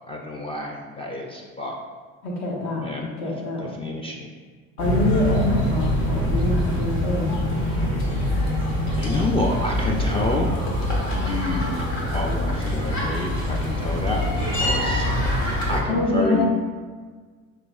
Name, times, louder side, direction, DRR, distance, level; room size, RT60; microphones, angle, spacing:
voice 1, 0.1-1.7 2.8-3.3 3.6-4.3 9.0-10.5 11.1-15.1 15.7-16.4, left 1 dB, 15° left, 0 dB, 0.3 m, -29 dB
voice 2, 2.2-2.8 3.2-3.7 4.8-7.3 15.9-16.4, left 2 dB, 55° left, -3 dB, 1.4 m, -25 dB
sound 1, 4.8-15.8, left 1 dB, 70° left, 1.2 m, -24 dB
Screaming, 10.0-12.7, left 1 dB, 35° left, 1.0 m, -41 dB
5.8 x 3.2 x 2.3 m, 1.5 s
hypercardioid pair, 65°, 41 cm